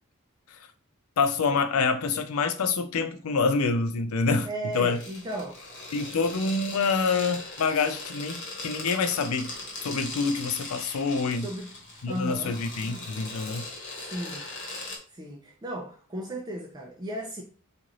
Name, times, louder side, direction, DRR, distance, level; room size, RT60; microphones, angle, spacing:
voice 1, 1.2-4.5 4.7-5.0 5.9-9.5 9.8-11.5 12.0-13.6, left 4 dB, 75° left, 0.5 m, -26 dB
voice 2, 4.4-5.6 11.4-11.7 12.1-12.6 14.0-14.5 15.1-17.4, right 1 dB, 20° right, 0.4 m, -35 dB
sound 1, 4.7-15.0, left 2 dB, 55° left, 1.1 m, -40 dB
3.1 x 2.5 x 3.8 m
head